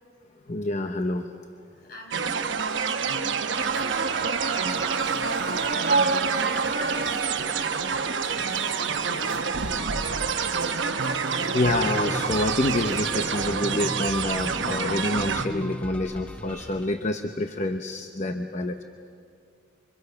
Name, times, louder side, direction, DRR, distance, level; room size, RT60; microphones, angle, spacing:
voice 1, 0.5-1.4 10.2-11.0 11.4-18.8, left 2 dB, 40° left, 6 dB, 0.8 m, -28 dB
voice 2, 1.9-7.3 7.5-8.0 8.2-9.6, equal, 60° left, 0 dB, 5.3 m, -45 dB
sound 1, 2.1-15.5, right 5 dB, 90° right, 1.0 m, -28 dB
sound 2, 3.5-13.5, right 4 dB, 55° right, 1.3 m, -32 dB
sound 3, 11.6-16.8, equal, 5° left, 0.6 m, -38 dB
28.5 x 25.5 x 5.7 m, 2.4 s
head